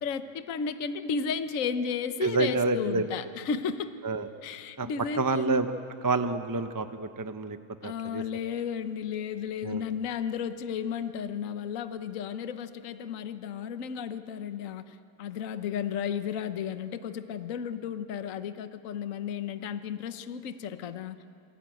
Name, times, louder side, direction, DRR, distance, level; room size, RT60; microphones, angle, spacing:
voice 1, 0.0-3.9 4.4-5.6 7.8-21.2, left 7 dB, 55° left, 9 dB, 1.3 m, -33 dB
voice 2, 2.2-3.0 4.0-4.3 4.8-4.9 5.2-5.7 6.0-7.6 7.8-8.2 9.6-9.8, right 3 dB, 20° right, 9 dB, 0.5 m, -28 dB
27.5 x 23.0 x 9.2 m, 2.5 s
omnidirectional pair, 1.8 m